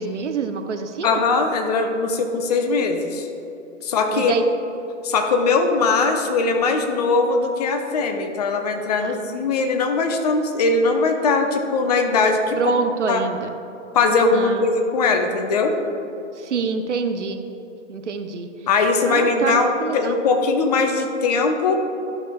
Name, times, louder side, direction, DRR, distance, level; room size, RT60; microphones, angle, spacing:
voice 1, 0.0-1.2 4.1-4.5 9.0-9.4 12.6-13.5 14.3-14.7 16.4-17.4 17.9-18.5 19.0-20.2, right 5 dB, 70° right, 7 dB, 0.7 m, -26 dB
voice 2, 1.0-3.3 3.8-4.3 5.0-12.6 13.1-13.2 13.9-15.8 18.7-21.7, left 4 dB, 35° left, 5 dB, 0.6 m, -20 dB
12.0 x 6.1 x 2.2 m, 2.9 s
figure-of-eight pair, 120°, 37 cm